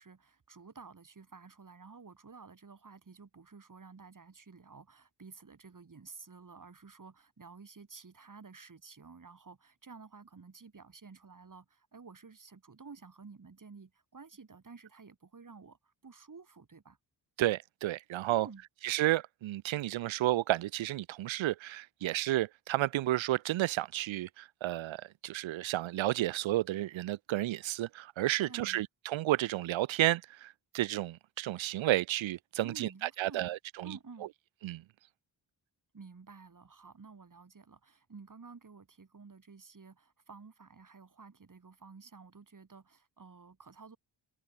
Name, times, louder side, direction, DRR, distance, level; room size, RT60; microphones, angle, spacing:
voice 1, 0.0-17.0 18.3-18.6 28.4-28.8 32.6-33.6 33.8-34.3 35.9-44.0, right 4 dB, 40° right, 5.4 m, -52 dB
voice 2, 17.4-18.5 18.8-32.9 33.2-34.0 34.6-34.8, right 15 dB, 80° right, 0.6 m, -32 dB
cardioid pair, 70°, 46 cm